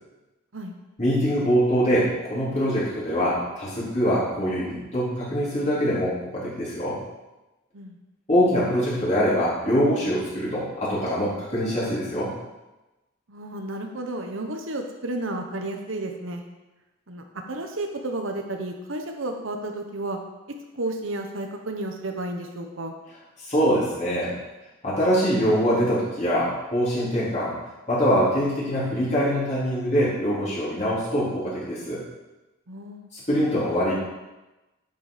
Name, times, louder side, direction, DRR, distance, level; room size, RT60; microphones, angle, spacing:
voice 1, 1.0-7.0 8.3-12.3 23.5-24.3 24.8-27.5 27.9-32.0 33.1-33.9, equal, 35° left, -8 dB, 4.1 m, -23 dB
voice 2, 13.3-16.4 17.1-20.2 20.7-22.9 32.7-33.1, right 2 dB, 80° right, 3 dB, 1.2 m, -32 dB
11.0 x 6.9 x 5.1 m, 1.1 s
head